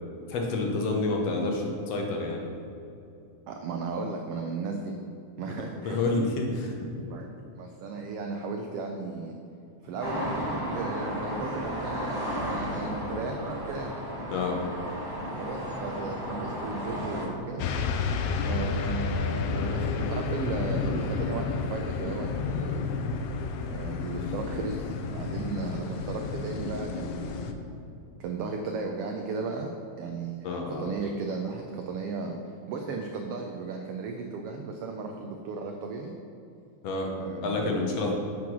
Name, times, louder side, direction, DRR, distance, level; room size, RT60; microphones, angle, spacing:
voice 1, 0.3-2.4 5.6-6.7 14.3-14.6 30.4-30.8 36.8-37.1 37.4-38.1, left 3 dB, 65° left, 1 dB, 1.9 m, -28 dB
voice 2, 3.5-5.0 5.4-6.0 7.0-7.3 7.6-9.4 9.8-14.0 15.4-17.7 18.4-22.8 23.7-27.5 28.2-29.7 30.0-32.4 32.7-36.2 37.2-37.9, right 4 dB, 85° right, 3 dB, 1.3 m, -35 dB
sound 1, 10.0-17.3, equal, 10° right, 1.2 m, -33 dB
sound 2, 17.6-27.5, left 4 dB, 85° left, 2.0 m, -31 dB
7.7 x 6.0 x 6.0 m, 2.7 s
omnidirectional pair, 3.3 m